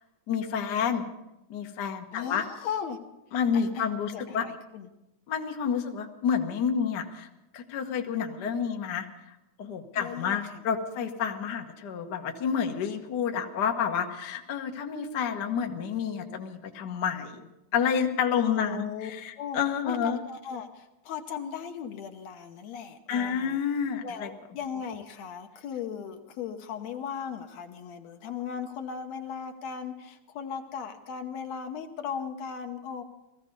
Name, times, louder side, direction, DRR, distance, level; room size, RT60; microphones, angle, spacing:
voice 1, 0.3-1.0 1.5-2.4 3.3-4.5 5.3-7.3 7.5-9.3 9.6-17.5 17.7-20.2 23.1-24.3, left 7 dB, 50° left, 4 dB, 1.3 m, -29 dB
voice 2, 2.1-3.0 3.5-3.9 4.1-4.9 10.0-10.6 18.3-19.1 19.4-19.6 19.8-23.6 24.0-33.0, left 7 dB, 70° left, 6 dB, 2.2 m, -37 dB
18.0 x 15.0 x 5.3 m, 0.92 s
omnidirectional pair, 3.3 m